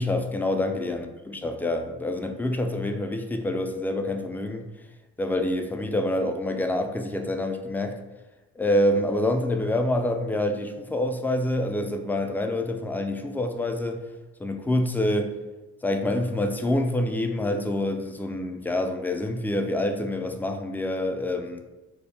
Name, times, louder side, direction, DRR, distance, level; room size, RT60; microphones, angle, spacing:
voice 1, 0.0-4.7 5.2-8.0 8.6-14.0 14.4-15.3 15.8-21.6, left 1 dB, 5° left, 5 dB, 0.3 m, -26 dB
4.3 x 2.2 x 3.3 m, 1.1 s
cardioid pair, 90°, 30 cm